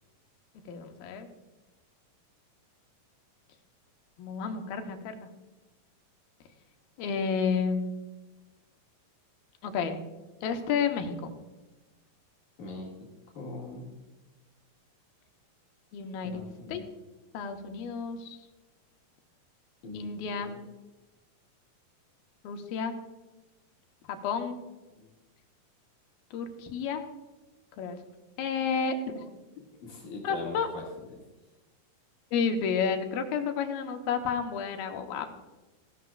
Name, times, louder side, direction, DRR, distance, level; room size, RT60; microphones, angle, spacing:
voice 1, 0.7-1.3 4.2-5.3 7.0-7.9 9.6-10.0 10.4-11.3 15.9-16.4 16.7-16.8 17.3-18.4 19.9-20.6 22.4-22.9 24.1-24.6 26.3-27.0 27.8-28.0 28.4-29.3 30.2-30.7 32.3-35.3, left 6 dB, 85° left, 5 dB, 2.9 m, -31 dB
voice 2, 12.6-12.9 13.3-13.9 16.2-16.9 19.8-20.1 20.3-20.6 24.9-25.1 29.8-30.8, left 3 dB, 60° left, -3 dB, 3.4 m, -41 dB
16.5 x 12.0 x 2.4 m, 1.1 s
omnidirectional pair, 4.2 m